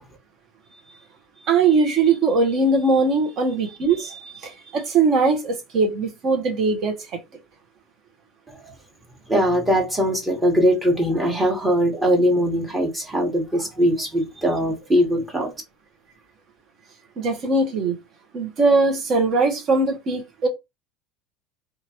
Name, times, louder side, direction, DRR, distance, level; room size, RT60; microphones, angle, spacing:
voice 1, 1.5-7.0 17.2-18.0 18.3-20.5, right 3 dB, 50° right, 0.9 m, -20 dB
voice 2, 9.3-15.5, equal, 15° right, 1.1 m, -21 dB
2.9 x 2.4 x 2.8 m
hypercardioid pair, 85°, 0 cm